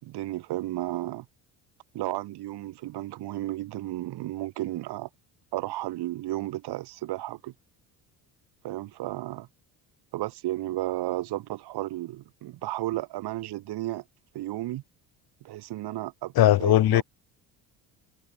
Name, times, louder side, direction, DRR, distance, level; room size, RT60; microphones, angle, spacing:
voice 1, 0.0-1.3 1.9-5.1 5.5-7.5 8.6-9.5 10.1-14.0 14.3-14.8 15.4-16.3 16.6-17.0, right 16 dB, 70° right, 6.9 m, -33 dB
voice 2, 16.4-17.0, left 14 dB, 65° left, 2.3 m, -19 dB
supercardioid pair, 80°, 40 cm